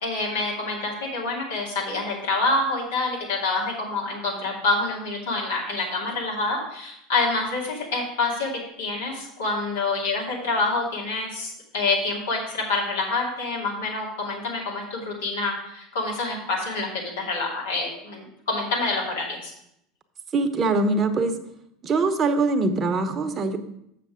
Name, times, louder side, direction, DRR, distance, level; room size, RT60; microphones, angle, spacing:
voice 1, 0.0-19.5, left 3 dB, 80° left, -3 dB, 2.8 m, -27 dB
voice 2, 20.3-21.3 21.8-23.6, right 3 dB, 35° right, 6 dB, 1.0 m, -23 dB
7.5 x 6.7 x 5.0 m, 0.76 s
hypercardioid pair, 85°, 0 cm